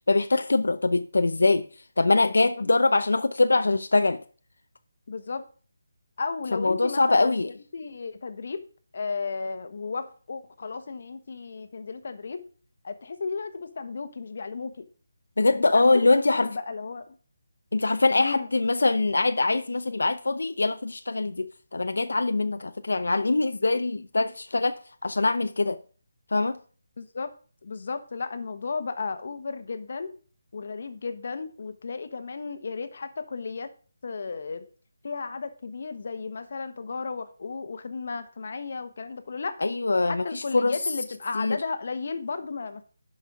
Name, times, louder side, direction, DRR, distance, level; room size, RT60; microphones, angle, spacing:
voice 1, 0.1-1.7 2.0-4.2 6.5-7.5 15.4-16.5 17.7-25.8 26.3-26.6 39.6-40.7 41.3-41.6, left 3 dB, 85° left, 0.7 m, -23 dB
voice 2, 5.1-5.4 6.2-7.4 7.7-8.6 8.9-12.4 12.8-14.9 15.5-17.2 18.2-18.5 27.0-27.3 27.6-30.1 30.5-33.7 34.0-34.6 35.0-39.7 40.1-42.8, left 4 dB, 50° left, 1.1 m, -34 dB
11.0 x 5.5 x 4.9 m
hypercardioid pair, 170°, 0 cm